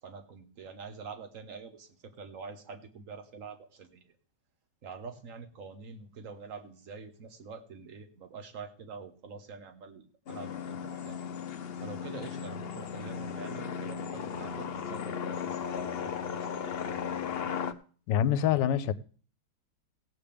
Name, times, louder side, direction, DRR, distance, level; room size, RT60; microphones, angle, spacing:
voice 1, 0.0-4.1 4.8-11.2 11.6-17.0, right 5 dB, 50° right, 1.6 m, -46 dB
sound 1, 10.3-17.7, left 7 dB, 65° left, 0.6 m, -36 dB
voice 2, 18.1-18.9, left 10 dB, 80° left, 1.3 m, -25 dB
17.0 x 8.6 x 3.5 m
omnidirectional pair, 1.9 m